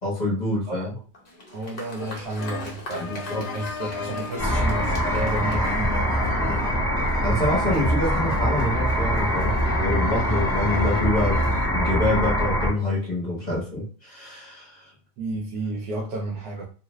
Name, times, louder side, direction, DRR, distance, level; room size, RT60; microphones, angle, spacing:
voice 1, 0.0-0.9 3.0-3.4 6.4-6.7 7.2-11.4 11.7-14.8, left 2 dB, 30° left, -3 dB, 1.1 m, -26 dB
voice 2, 0.5-0.9 1.5-6.1 15.2-16.7, right 2 dB, 70° right, -1 dB, 1.1 m, -31 dB
Applause, 1.1-6.7, left 1 dB, 50° left, 0.5 m, -42 dB
sound 1, 2.0-11.7, left 4 dB, 70° left, 1.0 m, -36 dB
sound 2, 4.4-12.7, equal, ahead, 0.9 m, -23 dB
2.7 x 2.5 x 3.0 m, 0.39 s
omnidirectional pair, 1.7 m